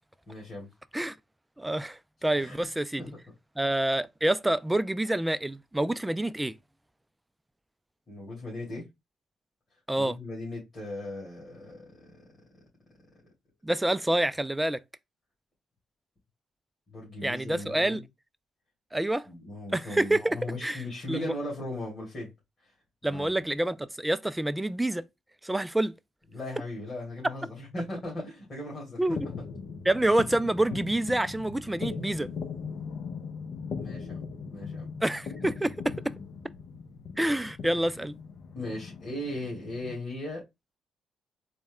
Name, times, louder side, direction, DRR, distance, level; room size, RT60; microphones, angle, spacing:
voice 1, 0.3-0.7 2.4-2.6 3.0-3.2 8.1-8.9 10.0-12.2 16.9-18.0 19.3-22.3 22.6-22.7 23.0-23.5 26.3-29.2 33.8-34.2 34.5-34.9 38.5-40.4, left 1 dB, 40° left, 2.2 m, -38 dB
voice 2, 1.6-3.1 3.6-6.5 9.9-10.2 13.6-14.8 17.2-18.0 18.9-19.3 19.7-20.8 21.1-21.3 23.0-25.0 25.4-25.9 29.0-29.3 29.9-32.3 35.0-36.0 37.2-38.1, right 1 dB, 10° right, 0.3 m, -27 dB
sound 1, 29.1-39.9, left 5 dB, 65° left, 0.7 m, -39 dB
4.1 x 2.1 x 3.6 m
cardioid pair, 90°, 0 cm